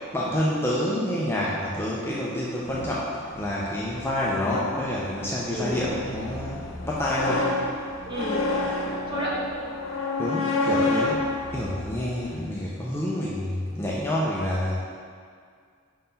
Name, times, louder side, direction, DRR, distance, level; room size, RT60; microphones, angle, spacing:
voice 1, 0.1-7.5 10.2-11.2 11.5-14.8, left 1 dB, 10° left, -6 dB, 0.6 m, -28 dB
sound 1, 2.6-12.6, left 2 dB, 80° left, 0.9 m, -30 dB
voice 2, 5.4-5.8 8.0-8.4 9.1-9.4, equal, 25° right, -8 dB, 1.6 m, -30 dB
5.2 x 4.2 x 5.6 m, 2.1 s
head